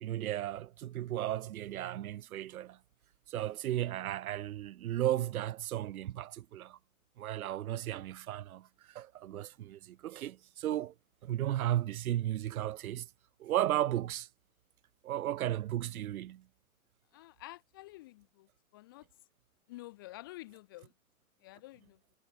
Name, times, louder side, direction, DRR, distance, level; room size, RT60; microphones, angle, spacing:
voice 1, 0.0-2.8 3.3-6.8 7.2-10.9 11.2-13.1 13.4-14.3 15.0-16.4, right 13 dB, 85° right, 0.6 m, -35 dB
voice 2, 17.1-19.1 19.7-20.9 21.4-22.0, left 18 dB, 15° left, 0.6 m, -50 dB
hypercardioid pair, 160°, 42 cm